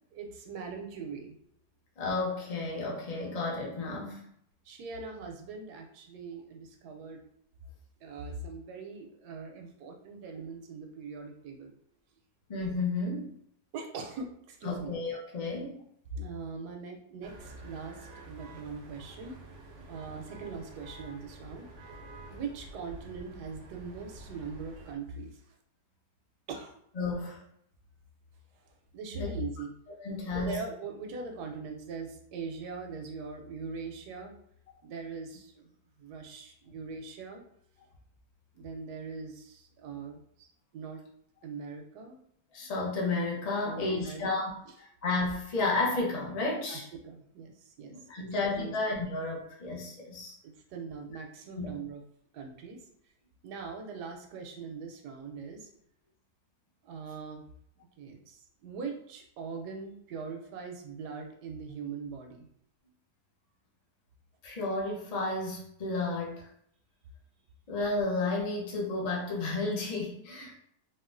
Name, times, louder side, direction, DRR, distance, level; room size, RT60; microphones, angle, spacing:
voice 1, 0.1-1.4 4.6-7.2 8.0-11.7 13.7-14.9 16.1-19.4 19.9-21.7 22.3-25.6 26.5-26.7 28.9-29.7 30.3-34.3 34.8-37.4 38.5-40.5 40.7-41.0 41.4-42.2 43.6-44.7 46.7-48.3 48.6-48.8 50.4-52.0 52.3-52.8 53.4-55.7 56.8-57.4 58.0-62.5, right 4 dB, 90° right, 3 dB, 1.2 m, -41 dB
voice 2, 2.0-4.2 12.5-13.3 14.6-15.8 27.0-27.4 29.1-29.3 30.0-30.6 42.5-44.5 44.8-46.9 47.9-50.3 51.6-51.8 64.4-66.5 67.7-70.5, left 3 dB, 70° left, -3 dB, 0.3 m, -32 dB
sound 1, 17.2-25.0, right 1 dB, 70° right, 0.7 m, -48 dB
3.6 x 2.3 x 2.5 m, 0.69 s
omnidirectional pair, 1.7 m